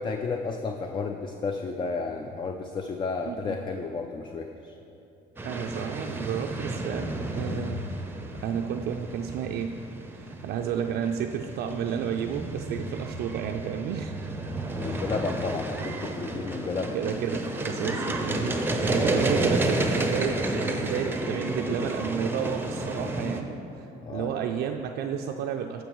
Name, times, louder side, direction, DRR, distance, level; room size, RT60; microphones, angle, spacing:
voice 1, 0.0-4.7 14.7-17.0 18.9-19.1 24.0-24.3, left 4 dB, 30° left, 4 dB, 0.4 m, -32 dB
voice 2, 3.3-3.6 5.4-7.9 8.4-9.8 10.1-14.3 14.8-15.0 16.3-16.4 16.9-25.8, right 8 dB, 70° right, 3 dB, 0.4 m, -32 dB
sound 1, 5.4-23.4, right 1 dB, 10° right, 0.6 m, -31 dB
14.5 x 5.3 x 3.0 m, 2.8 s
cardioid pair, 110°, 17 cm